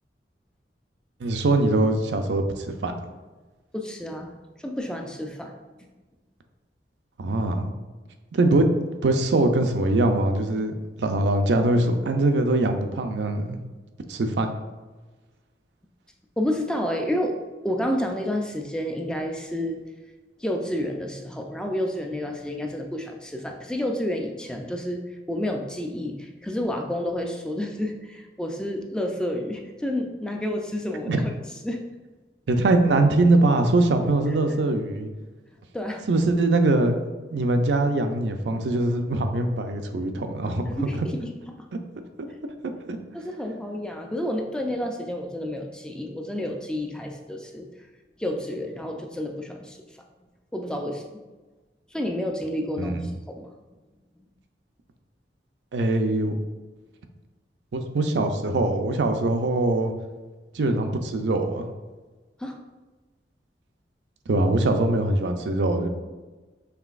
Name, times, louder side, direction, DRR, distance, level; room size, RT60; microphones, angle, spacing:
voice 1, 1.2-2.5 2.8-2.9 7.2-7.7 8.3-8.7 9.0-10.7 11.0-13.6 14.1-14.5 31.1-31.2 32.5-35.1 36.1-37.0 37.3-41.1 42.9-43.0 52.8-53.1 55.7-56.3 57.7-59.9 60.5-61.7 64.3-65.9, right 2 dB, 80° right, 6 dB, 0.5 m, -22 dB
voice 2, 3.7-4.3 4.6-5.5 16.4-17.4 17.6-19.8 20.4-25.0 25.3-31.3 31.6-31.8 34.5-34.6 35.7-36.1 40.7-41.5 43.1-47.7 48.2-49.8 50.5-51.0 51.9-53.5 62.4-62.6, left 1 dB, 5° left, 2 dB, 0.3 m, -30 dB
5.8 x 3.2 x 2.4 m, 1.3 s
head